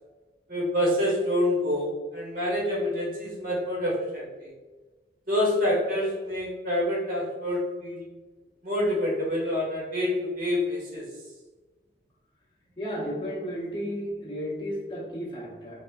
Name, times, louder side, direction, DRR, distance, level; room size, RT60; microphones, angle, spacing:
voice 1, 0.5-4.5 5.3-8.1 8.6-11.1, left 1 dB, 50° right, -4 dB, 1.1 m, -27 dB
voice 2, 12.8-15.8, equal, 25° left, -5 dB, 0.8 m, -33 dB
3.5 x 2.3 x 2.4 m, 1.3 s
head